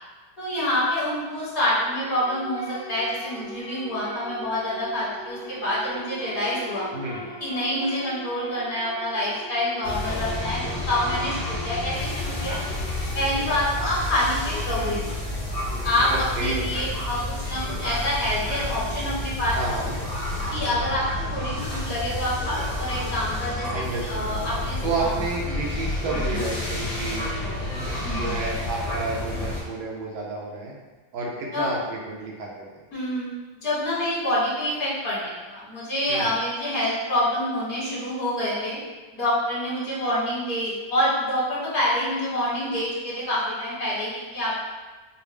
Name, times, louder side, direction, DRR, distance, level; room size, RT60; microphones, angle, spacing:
voice 1, 0.4-6.9 7.4-12.6 13.1-15.1 15.8-17.2 17.5-19.6 20.5-25.1 26.1-26.2 28.0-28.3 31.5-31.7 32.9-33.3 33.6-38.8 39.1-44.5, left 1 dB, 50° left, -8 dB, 1.4 m, -27 dB
sound 1, 1.3-13.2, left 2 dB, 70° left, 0.7 m, -40 dB
voice 2, 6.9-7.2 16.1-16.7 19.5-20.0 23.7-27.3 28.1-30.7 31.1-32.7 36.1-36.3, right 3 dB, 85° right, -2 dB, 1.5 m, -30 dB
sound 2, 9.8-29.6, left 1 dB, 30° left, 0.8 m, -30 dB
4.9 x 2.0 x 3.3 m, 1.3 s
omnidirectional pair, 2.1 m